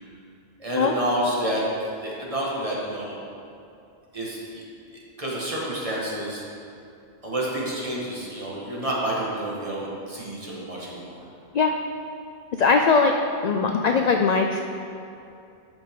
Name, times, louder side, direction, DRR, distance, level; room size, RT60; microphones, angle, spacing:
voice 1, 0.6-1.6 2.0-3.2 4.1-4.6 5.2-6.4 7.2-11.3, right 1 dB, 30° right, -5 dB, 1.7 m, -29 dB
voice 2, 12.6-13.2 13.4-14.6, left 4 dB, 55° left, 4 dB, 0.4 m, -20 dB
12.5 x 6.2 x 3.7 m, 2.6 s
omnidirectional pair, 1.1 m